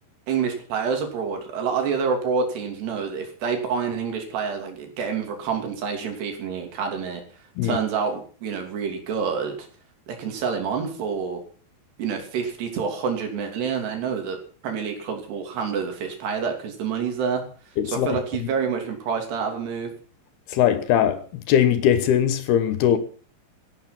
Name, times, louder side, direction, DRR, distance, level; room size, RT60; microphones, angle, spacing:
voice 1, 0.3-7.2 7.6-9.6 10.1-11.4 12.0-14.4 14.6-17.4 17.9-19.9, right 6 dB, 70° right, 5.0 m, -27 dB
voice 2, 17.8-18.2 20.5-21.2 21.5-23.0, left 10 dB, 70° left, 3.0 m, -20 dB
14.0 x 12.0 x 6.0 m
omnidirectional pair, 5.0 m